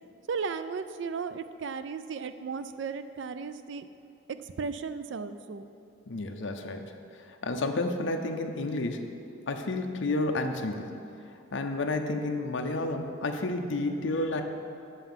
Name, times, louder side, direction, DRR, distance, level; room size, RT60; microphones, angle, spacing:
voice 1, 0.3-3.9 4.3-5.7, right 5 dB, 55° right, 11 dB, 0.3 m, -35 dB
voice 2, 6.1-6.9 7.3-9.1 9.5-11.0 11.5-14.4, left 2 dB, 60° left, 4 dB, 0.6 m, -31 dB
6.9 x 5.6 x 7.3 m, 2.7 s
head